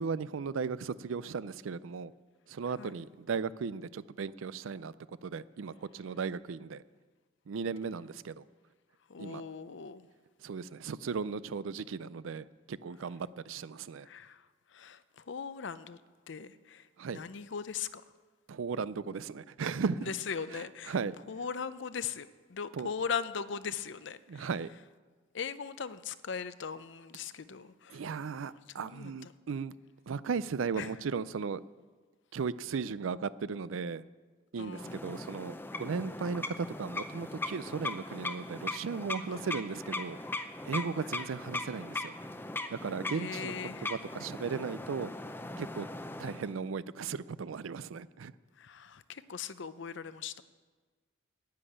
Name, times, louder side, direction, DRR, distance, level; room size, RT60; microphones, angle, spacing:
voice 1, 0.0-2.1 2.5-4.9 5.2-6.8 7.5-8.4 9.2-9.4 10.4-14.1 17.0-17.2 18.5-20.1 20.5-21.1 22.8-22.9 24.3-24.7 27.9-29.7 30.1-31.6 32.3-34.0 34.5-42.1 42.7-43.5 43.8-45.1 45.6-45.9 46.2-48.3, right 5 dB, 85° right, 17 dB, 0.4 m, -36 dB
voice 2, 9.1-10.1 14.0-14.5 14.7-16.0 16.3-18.0 20.0-21.0 21.3-24.5 25.3-28.0 28.8-29.3 30.7-30.9 34.6-35.0 39.3-39.5 41.2-41.3 43.1-43.9 48.6-50.4, left 6 dB, 65° left, 14 dB, 0.6 m, -39 dB
sound 1, 34.7-46.5, left 2 dB, 10° left, 0.6 m, -39 dB
10.5 x 9.8 x 8.6 m, 1.4 s
head